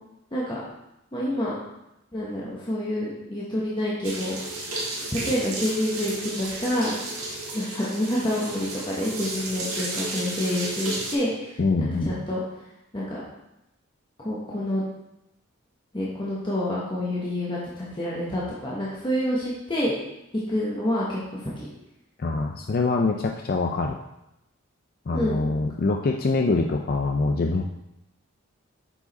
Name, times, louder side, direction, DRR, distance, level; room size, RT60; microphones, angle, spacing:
voice 1, 0.3-0.6 1.1-1.6 2.1-4.4 5.1-6.9 7.5-12.4 12.9-13.2 14.2-14.8 15.9-20.0 20.5-21.7 25.1-25.5, left 1 dB, 20° left, -6 dB, 1.0 m, -28 dB
sound 1, 4.0-11.1, right 2 dB, 80° right, 1.8 m, -33 dB
voice 2, 11.6-12.1 22.2-24.0 25.1-27.6, left 3 dB, 45° left, 2 dB, 0.4 m, -24 dB
6.9 x 4.7 x 4.1 m, 0.88 s
head